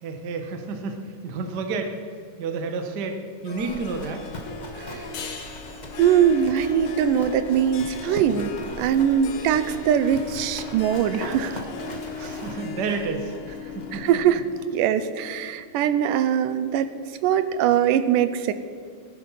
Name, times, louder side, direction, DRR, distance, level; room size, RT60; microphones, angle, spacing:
voice 1, 0.0-1.9 2.4-4.2 12.2-13.4 13.7-14.0, right 4 dB, 55° right, 5 dB, 1.2 m, -30 dB
Harp, 3.4-15.6, left 4 dB, 70° left, 1.3 m, -37 dB
Livestock farm animals working animals, 3.5-14.3, left 1 dB, 35° left, 0.6 m, -40 dB
sound 1, 5.1-8.3, left 5 dB, 55° left, 1.5 m, -42 dB
voice 2, 6.0-8.5 8.8-11.6 13.9-14.4 14.7-16.9 17.2-18.5, right 9 dB, 85° right, 12 dB, 2.3 m, -22 dB
18.5 x 10.5 x 5.7 m, 2.1 s
omnidirectional pair, 3.8 m